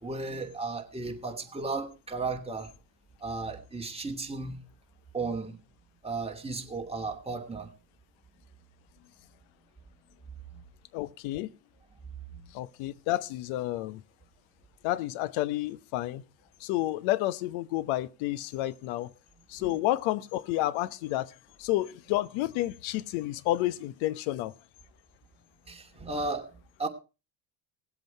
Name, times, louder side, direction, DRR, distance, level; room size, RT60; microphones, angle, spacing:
voice 1, 0.0-2.7 3.2-4.6 5.1-5.6 6.0-7.7 12.3-12.4 19.6-19.7 25.7-26.5 26.8-26.9, right 3 dB, 10° right, 2.7 m, -34 dB
voice 2, 10.9-11.5 12.5-14.0 14.8-16.2 16.6-19.1 19.5-24.5, left 16 dB, 70° left, 1.0 m, -30 dB
19.0 x 8.0 x 4.6 m
supercardioid pair, 80°, 49 cm